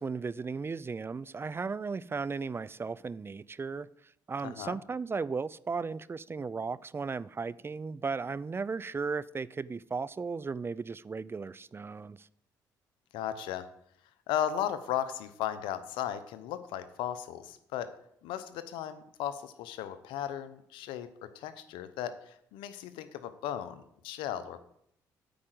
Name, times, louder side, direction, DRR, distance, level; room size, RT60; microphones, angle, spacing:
voice 1, 0.0-3.9 4.3-12.3, right 4 dB, 30° right, 0.4 m, -36 dB
voice 2, 4.4-4.8 13.1-13.7 14.3-17.9 18.2-24.6, left 10 dB, 85° left, 0.7 m, -36 dB
8.7 x 5.0 x 7.7 m
supercardioid pair, 65°, 8 cm